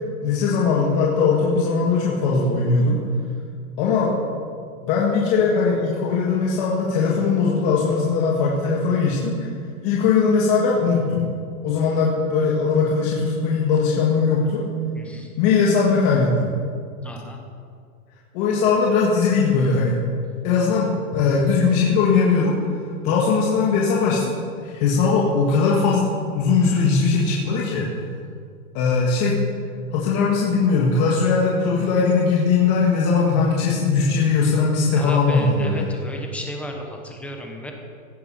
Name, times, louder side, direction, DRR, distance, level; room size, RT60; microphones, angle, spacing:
voice 1, 0.2-3.0 3.8-4.1 4.8-9.5 9.8-11.2 11.6-14.7 15.4-16.5 18.3-20.0 20.4-22.6 23.0-24.3 24.6-27.9 28.7-29.4 29.9-35.8, left 4 dB, 35° left, -4 dB, 1.8 m, -20 dB
voice 2, 14.9-15.3 17.0-17.4 34.9-37.7, left 1 dB, 5° left, 2 dB, 1.0 m, -34 dB
16.0 x 8.2 x 5.7 m, 2.2 s
hypercardioid pair, 160°, 42 cm